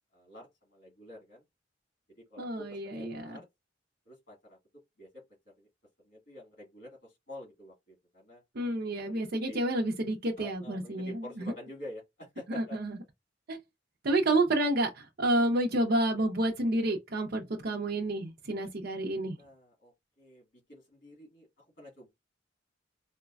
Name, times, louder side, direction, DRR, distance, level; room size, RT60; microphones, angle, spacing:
voice 1, 0.1-1.4 2.2-3.4 4.0-4.6 5.0-5.2 5.6-5.7 6.0-8.4 9.0-9.2 9.5-9.7 10.4-12.8 19.4-20.4 20.7-22.1, equal, 50° left, 1.7 m, -48 dB
voice 2, 2.4-3.4 8.5-11.5 12.5-13.0 13.5-13.6 14.0-19.4, right 1 dB, 55° right, 0.6 m, -29 dB
3.9 x 2.1 x 2.3 m
head